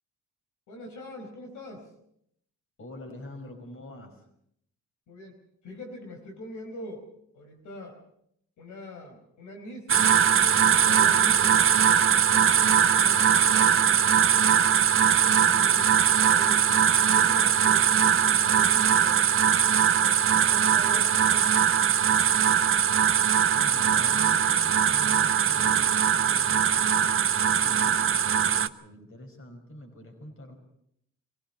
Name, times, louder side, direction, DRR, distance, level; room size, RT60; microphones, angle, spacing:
voice 1, 0.7-1.9 5.1-7.1 7.3-8.0 8.6-11.7 12.0-13.9 15.2-19.4 20.0-21.6, left 1 dB, 75° left, 3 dB, 4.6 m, -43 dB
voice 2, 2.8-4.2 15.6-16.0 23.5-30.5, left 1 dB, 45° left, 6 dB, 5.5 m, -45 dB
sound 1, 9.9-28.7, right 8 dB, 45° right, 0.9 m, -21 dB
24.0 x 16.5 x 6.8 m, 0.72 s
cardioid pair, 90°, 30 cm